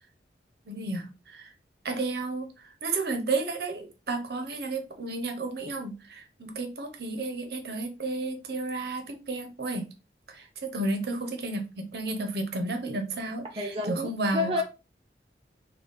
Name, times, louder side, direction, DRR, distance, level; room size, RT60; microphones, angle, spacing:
voice 1, 0.7-1.5 1.8-2.5 2.8-9.8 10.3-14.5, right 2 dB, 65° right, 0.8 m, -32 dB
voice 2, 13.6-14.6, left 2 dB, 30° right, 0.4 m, -30 dB
3.6 x 2.3 x 3.9 m
head